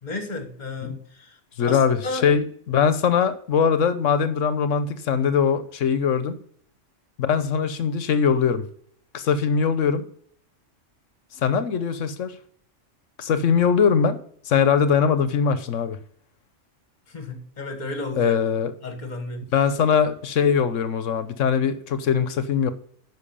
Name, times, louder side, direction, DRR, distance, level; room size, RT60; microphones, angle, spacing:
voice 1, 0.0-1.4 1.6-2.3 17.1-18.3 18.8-19.4, left 2 dB, 35° left, 6 dB, 1.6 m, -33 dB
voice 2, 1.6-6.4 7.2-8.6 9.1-10.0 11.4-12.3 13.2-14.2 14.4-16.0 18.2-18.7 19.5-22.7, left 6 dB, 80° left, 12 dB, 1.2 m, -21 dB
10.0 x 6.4 x 5.5 m, 0.62 s
omnidirectional pair, 1.3 m